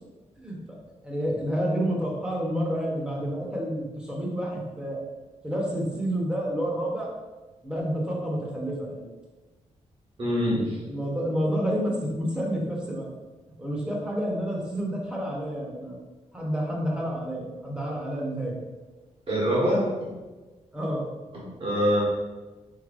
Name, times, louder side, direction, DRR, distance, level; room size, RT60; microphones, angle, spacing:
voice 1, 0.4-0.8 1.0-5.0 5.4-7.1 7.6-9.1 10.9-13.1 13.6-16.0 16.3-18.6 20.7-21.0, equal, 5° right, -3 dB, 0.9 m, -29 dB
voice 2, 10.2-10.8 19.3-19.9 21.3-22.0, equal, 45° right, -6 dB, 1.5 m, -24 dB
4.8 x 4.0 x 2.5 m, 1.2 s
wide cardioid pair, 160°, 12 cm